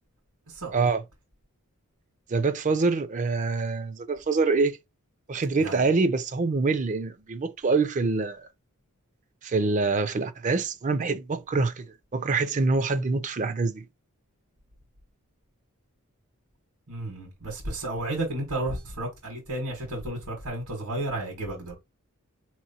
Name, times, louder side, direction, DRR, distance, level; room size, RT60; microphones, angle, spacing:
voice 1, 0.5-0.9 5.6-5.9 16.9-21.7, right 1 dB, 80° right, 1.5 m, -32 dB
voice 2, 2.3-4.8 5.3-8.5 9.4-11.9 12.1-13.8, right 3 dB, 35° right, 0.4 m, -25 dB
4.1 x 3.0 x 2.7 m
head